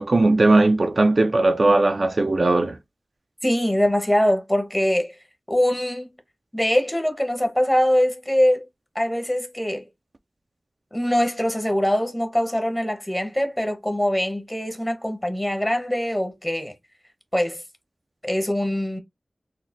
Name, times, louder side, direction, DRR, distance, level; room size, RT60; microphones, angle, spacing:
voice 1, 0.0-2.8, right 2 dB, 60° right, 0.4 m, -18 dB
voice 2, 3.4-5.1 5.5-6.1 6.5-8.6 8.9-9.9 10.9-16.7 17.3-17.6 18.2-19.0, equal, 15° left, 1.1 m, -23 dB
3.9 x 2.1 x 2.5 m
cardioid pair, 40°, 0 cm